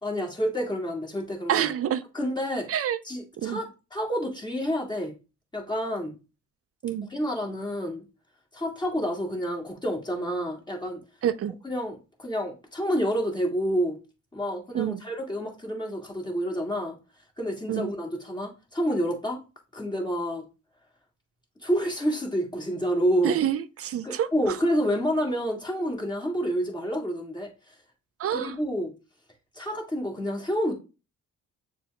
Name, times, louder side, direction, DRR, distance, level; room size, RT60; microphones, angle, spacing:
voice 1, 0.0-1.7 2.1-2.7 3.0-3.6 3.9-5.1 5.5-6.1 7.1-8.0 8.5-11.0 11.6-14.0 14.3-17.0 17.4-19.4 19.7-20.5 21.6-23.4 24.0-27.8 28.3-28.9 29.5-30.7, equal, 15° left, 1.8 m, -28 dB
voice 2, 1.5-2.0 2.7-3.0 3.4-3.6 6.8-7.1 11.2-11.5 14.7-15.0 17.7-17.9 23.2-24.3 28.2-28.5, right 10 dB, 50° right, 0.4 m, -27 dB
6.8 x 2.4 x 3.1 m
cardioid pair, 90°, 30 cm